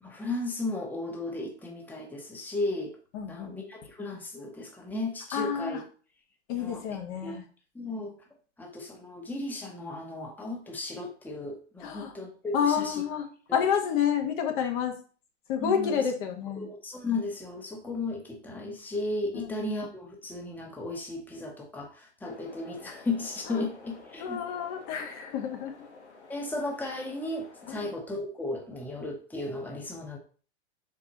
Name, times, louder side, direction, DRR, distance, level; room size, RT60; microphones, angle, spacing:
voice 1, 0.0-3.0 3.3-5.8 6.6-7.0 7.2-7.4 7.7-8.1 8.6-13.0 13.5-13.6 15.6-16.0 16.6-24.4 26.3-30.2, left 2 dB, 5° left, 0 dB, 1.2 m, -35 dB
voice 2, 3.1-3.5 5.3-5.8 6.5-7.5 11.8-12.1 12.5-15.0 15.5-16.7 19.3-19.5 23.5-23.7 24.2-25.8 27.7-27.9, left 8 dB, 45° left, 4 dB, 1.4 m, -29 dB
sound 1, 22.2-28.0, left 4 dB, 80° left, 2.6 m, -51 dB
5.5 x 4.6 x 4.2 m, 0.39 s
hypercardioid pair, 110°, 35 cm